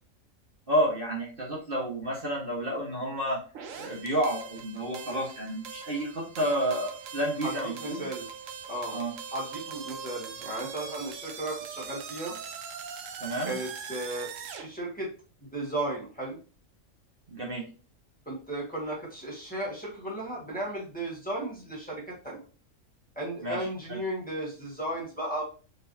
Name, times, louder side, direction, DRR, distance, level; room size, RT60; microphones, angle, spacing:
voice 1, 0.7-3.4 3.8-8.0 8.9-9.1 13.2-13.5 17.3-17.6 23.4-23.6 23.9-24.0, right 1 dB, 45° right, -4 dB, 1.3 m, -30 dB
sound 1, 3.5-14.7, right 6 dB, 75° right, 1.0 m, -41 dB
voice 2, 7.8-8.2 8.7-9.0 9.3-12.4 13.4-15.1 15.4-16.4 18.2-22.4 23.1-25.4, right 1 dB, 5° left, -5 dB, 1.5 m, -35 dB
4.5 x 3.2 x 2.7 m, 0.36 s
omnidirectional pair, 1.4 m